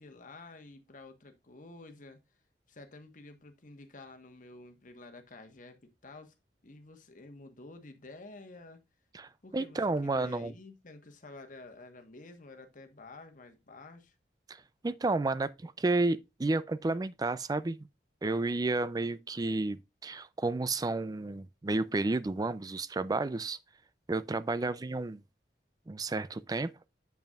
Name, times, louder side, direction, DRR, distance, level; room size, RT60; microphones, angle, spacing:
voice 1, 0.0-2.2 2.7-6.4 6.6-8.8 9.4-14.1, left 2 dB, 50° left, 1.3 m, -50 dB
voice 2, 9.1-10.5 14.5-17.9 18.2-23.6 24.1-25.2 25.9-26.7, right 2 dB, 20° right, 0.4 m, -31 dB
8.0 x 7.0 x 2.4 m
head